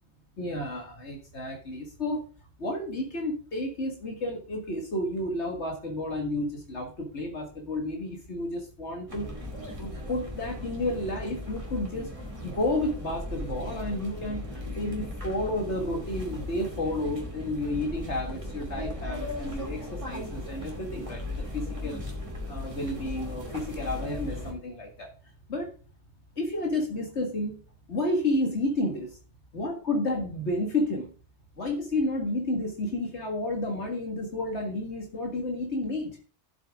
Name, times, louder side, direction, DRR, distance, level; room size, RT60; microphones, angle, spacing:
voice 1, 0.4-2.2 2.6-9.3 9.8-12.1 12.4-22.0 22.5-25.1 25.5-25.7 26.4-27.5 27.9-29.1 29.5-31.1 31.6-36.2, left 1 dB, 65° left, 1 dB, 2.1 m, -31 dB
sound 1, 9.1-24.5, left 1 dB, 25° right, 2.5 m, -37 dB
12.5 x 7.6 x 3.6 m, 0.37 s
omnidirectional pair, 1.3 m